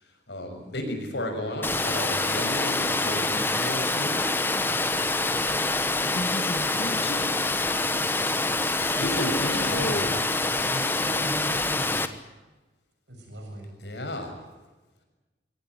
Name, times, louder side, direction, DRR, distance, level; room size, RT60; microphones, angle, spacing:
voice 1, 0.3-4.2 9.0-10.2 13.8-14.4, left 1 dB, 75° left, 4 dB, 6.6 m, -33 dB
Water, 1.6-12.1, left 2 dB, 10° left, 1.2 m, -26 dB
voice 2, 6.1-7.4 9.0-10.2, left 1 dB, 55° left, 5 dB, 2.0 m, -33 dB
voice 3, 10.5-12.1 13.1-13.7, right 1 dB, 80° right, 2 dB, 7.2 m, -37 dB
24.0 x 17.0 x 9.6 m, 1.2 s
head